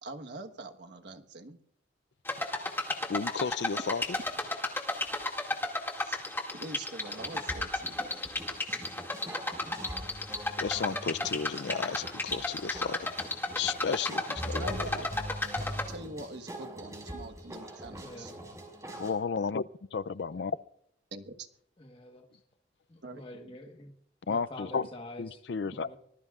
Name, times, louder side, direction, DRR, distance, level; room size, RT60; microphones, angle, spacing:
voice 1, 0.0-1.6 6.0-6.2 6.5-8.2 14.5-15.1 15.7-18.3 21.1-21.5 23.0-23.5, right 2 dB, 75° right, 1.4 m, -44 dB
sound 1, 2.3-15.9, left 2 dB, 15° left, 2.2 m, -34 dB
voice 2, 3.1-4.2 9.3-9.4 10.6-13.1 13.5-15.0 19.0-19.6 19.9-20.5 24.3-24.9 25.2-26.0, left 5 dB, 75° left, 0.5 m, -33 dB
sound 2, 7.0-19.1, equal, 20° right, 5.4 m, -43 dB
voice 3, 18.0-18.4 21.8-22.3 22.9-23.9 24.3-26.0, left 1 dB, 30° left, 1.3 m, -46 dB
24.5 x 20.0 x 2.5 m
head